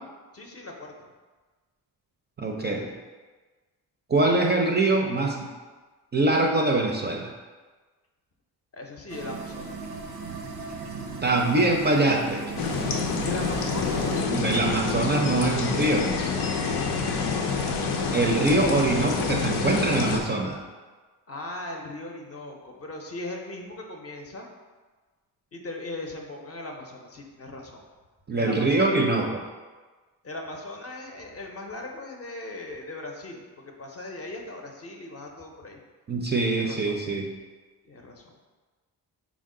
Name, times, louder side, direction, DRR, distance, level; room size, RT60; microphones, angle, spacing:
voice 1, 0.3-1.1 8.7-9.9 13.2-14.1 21.3-24.5 25.5-27.8 28.3-29.0 30.2-35.8 36.5-37.0 37.8-38.4, left 2 dB, 40° left, 1 dB, 0.6 m, -39 dB
voice 2, 2.4-2.9 4.1-5.5 6.1-7.3 11.2-12.8 14.2-16.1 18.1-20.6 28.3-29.4 36.1-37.3, right 2 dB, 30° right, 1 dB, 0.4 m, -23 dB
sound 1, 9.1-14.2, right 3 dB, 85° right, 0.6 m, -36 dB
sound 2, 12.6-20.2, left 4 dB, 90° left, 0.5 m, -27 dB
4.7 x 2.1 x 3.6 m, 1.3 s
cardioid pair, 80°, 39 cm